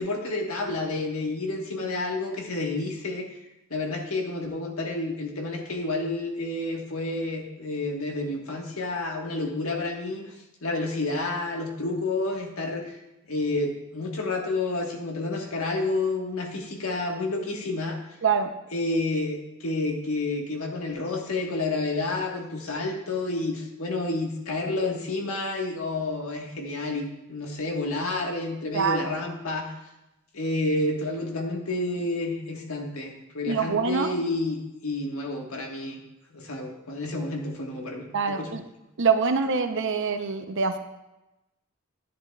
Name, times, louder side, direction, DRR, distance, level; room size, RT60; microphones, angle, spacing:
voice 1, 0.0-3.3 3.7-10.2 10.6-12.8 13.3-18.0 18.7-29.7 30.3-36.0 36.3-38.5, left 2 dB, 85° left, 1 dB, 1.5 m, -30 dB
voice 2, 28.7-29.1 33.5-34.1 38.1-38.6 39.0-40.8, right 5 dB, 60° right, 8 dB, 0.7 m, -25 dB
10.0 x 9.9 x 2.3 m, 0.95 s
head